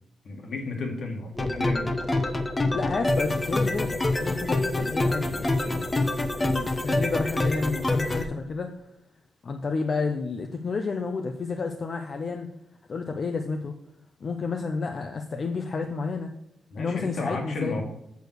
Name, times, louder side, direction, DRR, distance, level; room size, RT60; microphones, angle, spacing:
voice 1, 0.2-1.9 16.7-17.8, left 3 dB, 65° left, 2 dB, 2.0 m, -33 dB
sound 1, 1.4-8.2, left 2 dB, 25° left, 1.0 m, -26 dB
voice 2, 2.7-5.8 6.4-8.7 9.4-12.5 12.9-13.7 14.2-16.3 16.8-17.8, left 4 dB, 50° left, 4 dB, 0.8 m, -30 dB
7.0 x 6.5 x 6.5 m, 0.81 s
cardioid pair, 105°, 0 cm